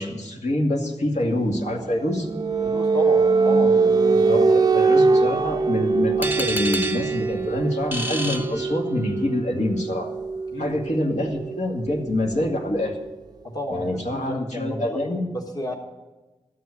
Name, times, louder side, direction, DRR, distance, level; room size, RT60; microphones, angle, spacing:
voice 1, 0.0-2.3 4.3-10.1 10.6-13.0 13.7-15.2, left 1 dB, 70° left, 0 dB, 2.3 m, -26 dB
sound 1, 1.5-13.0, right 4 dB, 35° right, 0.4 m, -23 dB
voice 2, 2.6-4.5 10.5-10.7 13.4-14.8 15.3-15.7, left 1 dB, 30° left, 2 dB, 1.3 m, -33 dB
sound 2, 6.2-9.2, right 1 dB, 15° right, 0.8 m, -30 dB
12.5 x 7.8 x 8.4 m, 1.1 s
wide cardioid pair, 115°, 12 cm